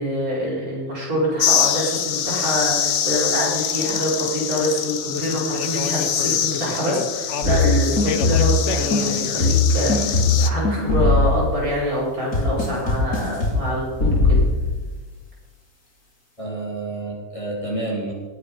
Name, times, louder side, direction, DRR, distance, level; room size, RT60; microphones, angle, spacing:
voice 1, 0.0-14.4, equal, 70° right, -5 dB, 5.2 m, -25 dB
sound 1, 1.4-10.5, left 8 dB, 55° left, 1.0 m, -24 dB
sound 2, 7.4-8.7 8.9-11.7 12.3-13.6 14.0-14.8, left 3 dB, 80° left, 4.2 m, -20 dB
voice 2, 16.4-18.1, right 2 dB, 20° left, -3 dB, 3.6 m, -29 dB
19.0 x 8.2 x 5.4 m, 1.3 s
omnidirectional pair, 1.6 m